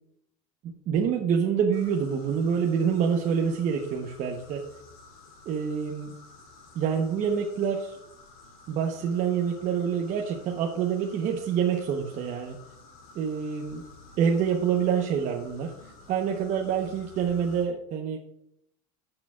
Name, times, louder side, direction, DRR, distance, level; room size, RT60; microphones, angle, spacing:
voice 1, 0.9-4.6 5.5-6.1 6.7-8.0 8.7-12.6 13.1-13.8 14.2-18.2, right 7 dB, 40° right, 1 dB, 1.0 m, -27 dB
sound 1, 1.7-17.6, left 3 dB, 75° left, 3.0 m, -52 dB
13.0 x 6.8 x 2.4 m, 0.75 s
supercardioid pair, 120°, 19 cm